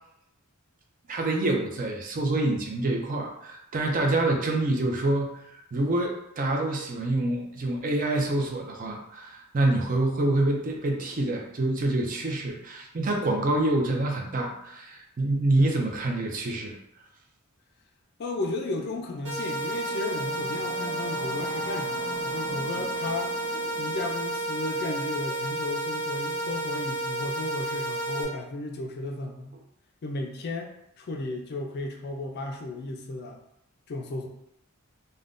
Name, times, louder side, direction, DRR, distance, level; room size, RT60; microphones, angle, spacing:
voice 1, 1.1-16.8, right 2 dB, 40° right, 1 dB, 0.5 m, -26 dB
voice 2, 18.2-29.6 30.0-33.4 33.9-34.3, left 2 dB, 45° left, 3 dB, 0.4 m, -34 dB
Singing / Musical instrument, 18.7-28.2, equal, 5° left, 0.7 m, -46 dB
sound 1, 19.2-28.2, right 1 dB, 60° right, 0.9 m, -31 dB
3.5 x 2.1 x 2.5 m, 0.79 s
head